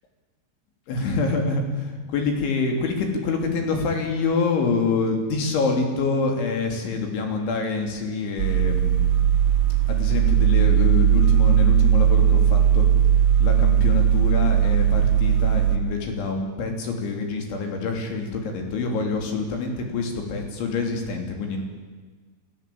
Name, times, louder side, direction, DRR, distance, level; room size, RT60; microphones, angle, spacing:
voice 1, 0.9-9.1 9.9-12.9 13.4-21.6, left 4 dB, 75° left, 3 dB, 5.6 m, -26 dB
sound 1, 8.4-15.8, right 9 dB, 60° right, 1.6 m, -18 dB
28.5 x 15.0 x 8.7 m, 1.4 s
omnidirectional pair, 5.5 m